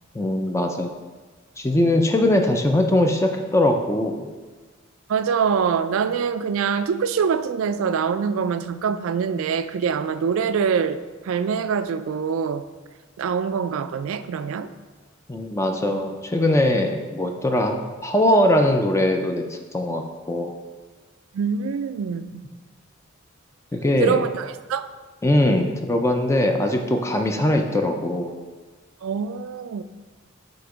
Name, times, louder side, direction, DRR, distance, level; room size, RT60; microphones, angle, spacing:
voice 1, 0.1-0.9 1.6-4.3 15.3-20.5 23.7-24.2 25.2-28.3, left 1 dB, 15° left, 4 dB, 0.4 m, -21 dB
voice 2, 5.1-12.7 13.2-14.7 21.3-22.4 24.0-24.9 29.0-29.8, right 6 dB, 80° right, 12 dB, 0.3 m, -24 dB
7.8 x 2.9 x 4.9 m, 1.3 s
head